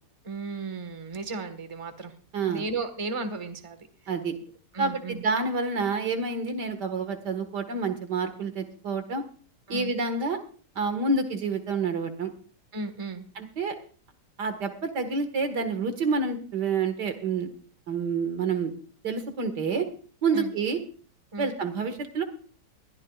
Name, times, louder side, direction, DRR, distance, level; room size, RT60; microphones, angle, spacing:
voice 1, 0.2-2.1 2.5-3.8 4.7-5.2 9.7-9.9 12.7-13.3 20.3-20.5 21.3-21.5, right 3 dB, 20° right, 8 dB, 1.5 m, -34 dB
voice 2, 2.3-2.6 4.1-4.4 4.8-9.2 9.7-10.4 10.8-12.3 13.4-13.8 14.4-17.5 17.9-18.7 19.0-19.9 20.2-20.8 21.4-22.2, right 4 dB, 75° right, 8 dB, 2.3 m, -28 dB
21.0 x 14.5 x 2.4 m, 0.41 s
omnidirectional pair, 1.8 m